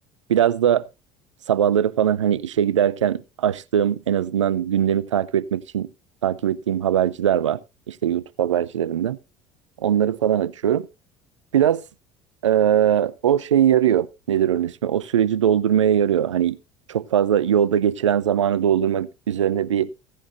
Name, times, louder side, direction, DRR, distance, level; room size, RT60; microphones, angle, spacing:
voice 1, 0.3-0.8 1.5-5.9 6.2-7.6 7.9-9.2 9.8-10.9 11.5-11.8 12.4-16.6 16.9-19.9, right 9 dB, 85° right, 0.5 m, -21 dB
16.0 x 10.5 x 2.6 m
hypercardioid pair, 65°, 15 cm